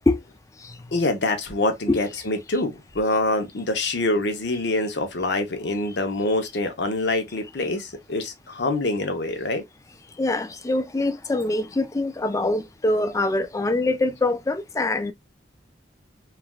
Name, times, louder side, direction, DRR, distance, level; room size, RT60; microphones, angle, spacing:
voice 1, 0.9-9.6, left 2 dB, 70° left, 0.7 m, -25 dB
voice 2, 10.2-15.1, left 2 dB, 20° left, 0.3 m, -24 dB
3.2 x 2.4 x 2.3 m
head